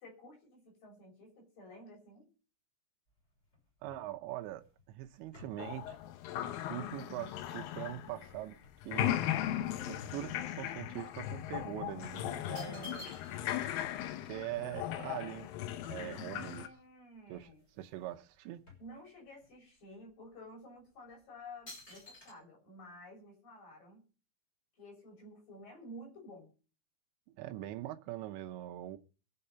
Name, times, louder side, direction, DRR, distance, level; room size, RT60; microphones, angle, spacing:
voice 1, 0.0-2.3 16.1-17.6 18.8-24.1 24.8-26.5, left 1 dB, 50° left, 8.0 m, -52 dB
sound 1, 3.1-8.2 8.6-10.8 11.1-11.3 12.0-13.6 13.9-14.0 14.2-16.3 16.9-17.0 17.2-18.0 18.3-19.5 20.1-20.2 20.9-21.1 21.7-22.3, left 2 dB, 15° left, 6.3 m, -54 dB
voice 2, 3.8-6.0 6.7-8.6 8.8-9.2 9.9-13.1 14.2-15.5 15.8-16.7 17.3-17.5 17.8-18.6 27.4-29.0, right 14 dB, 80° right, 3.1 m, -42 dB
sound 2, 5.6-8.6 8.8-16.7, left 12 dB, 75° left, 2.2 m, -38 dB
22.5 x 7.7 x 5.6 m
omnidirectional pair, 5.2 m